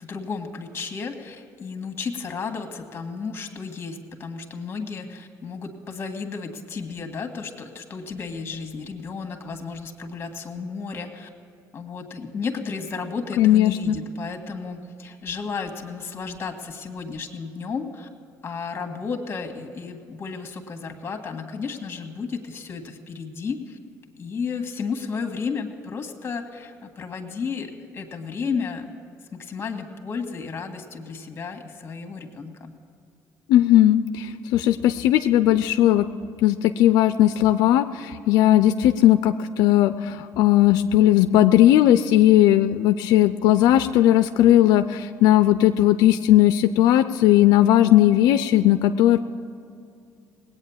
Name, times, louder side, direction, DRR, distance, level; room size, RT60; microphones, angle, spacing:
voice 1, 0.0-11.3 11.7-18.1 18.4-23.8 24.2-28.9 29.3-32.7, left 5 dB, 35° left, 6 dB, 1.8 m, -33 dB
voice 2, 13.4-14.0 33.5-36.1 36.4-49.2, left 13 dB, 85° left, 10 dB, 0.4 m, -17 dB
19.0 x 8.8 x 7.2 m, 2.4 s
cardioid pair, 110°, 7 cm